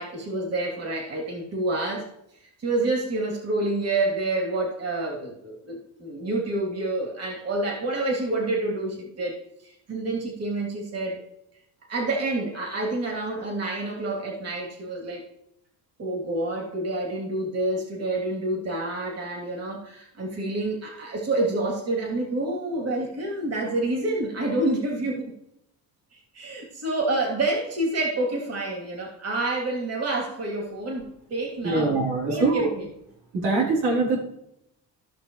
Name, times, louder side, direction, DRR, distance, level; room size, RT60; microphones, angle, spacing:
voice 1, 0.0-2.1 2.6-11.2 11.9-15.2 16.0-25.3 26.1-32.0 32.3-32.9, right 2 dB, 45° right, 0 dB, 3.0 m, -28 dB
voice 2, 31.6-32.7 33.3-34.2, right 3 dB, 90° right, -3 dB, 3.7 m, -23 dB
15.5 x 6.2 x 3.2 m, 0.79 s
cardioid pair, 110°, 36 cm